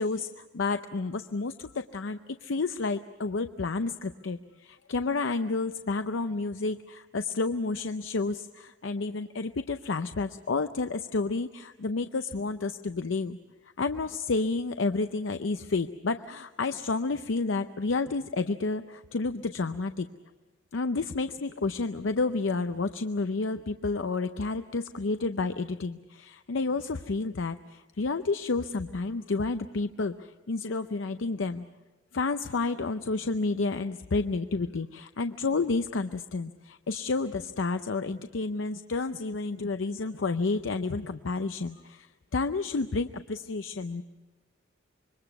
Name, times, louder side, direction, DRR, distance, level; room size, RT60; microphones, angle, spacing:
voice 1, 0.0-13.4 13.8-20.1 20.7-31.6 32.1-44.0, left 3 dB, 85° left, 9 dB, 0.6 m, -30 dB
26.0 x 23.0 x 5.9 m, 1.2 s
head